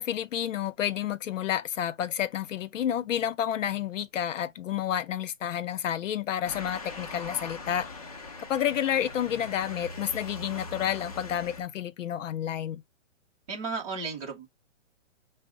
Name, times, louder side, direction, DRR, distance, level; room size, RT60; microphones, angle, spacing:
voice 1, 0.0-7.9 8.5-12.8, left 10 dB, 75° left, 0.6 m, -30 dB
Motor vehicle (road) / Siren, 6.5-11.6, left 2 dB, 30° left, 0.4 m, -41 dB
voice 2, 13.5-14.5, right 4 dB, 30° right, 0.7 m, -34 dB
5.3 x 2.0 x 3.7 m
hypercardioid pair, 170°, 38 cm